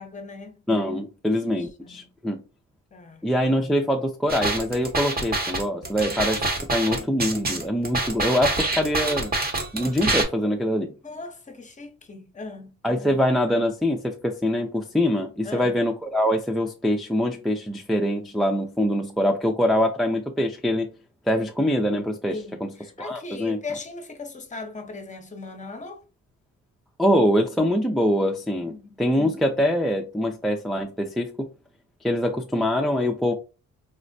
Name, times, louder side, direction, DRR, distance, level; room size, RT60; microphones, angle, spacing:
voice 1, 0.0-0.6 1.5-2.1 2.9-3.2 10.9-12.7 15.4-15.8 22.3-26.0 28.7-29.0, left 3 dB, 25° left, 0.7 m, -38 dB
voice 2, 0.7-2.4 3.2-9.3 9.7-10.9 12.8-20.9 21.3-22.7 23.0-23.6 27.0-31.5 32.0-33.3, equal, ahead, 0.4 m, -24 dB
sound 1, 4.3-10.2, right 2 dB, 30° right, 0.9 m, -26 dB
4.2 x 2.1 x 2.6 m
cardioid pair, 90°, 30 cm